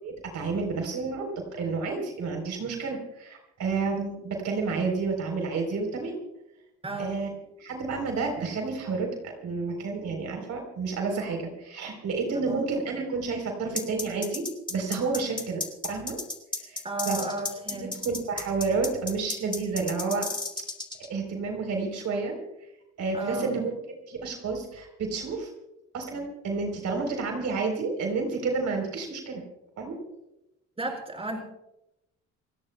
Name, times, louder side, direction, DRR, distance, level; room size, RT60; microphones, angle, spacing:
voice 1, 0.0-6.2 7.0-7.3 7.6-16.2 16.6-17.2 17.7-20.3 21.1-22.4 23.0-25.5 25.9-29.4 29.8-30.0, right 4 dB, 70° right, 3 dB, 3.8 m, -30 dB
voice 2, 6.8-7.2 12.5-12.6 16.8-18.0 23.1-23.5 30.8-31.4, right 2 dB, 20° right, 2 dB, 5.1 m, -33 dB
sound 1, 13.8-21.1, left 3 dB, 15° left, 2.4 m, -33 dB
28.5 x 18.0 x 2.3 m, 0.89 s
cardioid pair, 90°, 30 cm